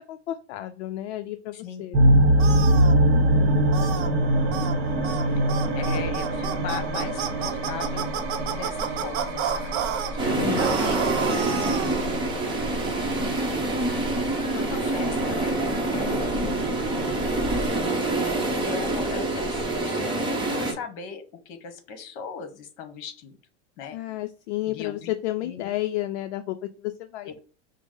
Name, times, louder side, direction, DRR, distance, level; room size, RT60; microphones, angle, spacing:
voice 1, 0.1-2.1 3.1-3.6 10.4-10.7 16.0-16.6 23.9-27.4, left 15 dB, 70° left, 0.5 m, -32 dB
sound 1, 1.9-17.7, right 1 dB, 30° right, 1.1 m, -25 dB
sound 2, 2.4-2.9 3.7-4.1 4.5-4.7 5.0-5.2 5.5-10.1 10.6-12.0, right 8 dB, 65° right, 0.8 m, -30 dB
voice 2, 3.8-4.2 5.7-8.1 8.5-9.9 10.1-12.7 13.9-14.0 14.5-15.6 15.9-16.4 17.7-23.4 23.8-24.0 24.7-25.1 25.4-25.7 27.2-27.4, left 6 dB, 45° left, 1.1 m, -39 dB
sound 3, 10.2-20.7, right 2 dB, 15° right, 0.8 m, -26 dB
6.0 x 2.0 x 3.7 m
supercardioid pair, 140°, 35 cm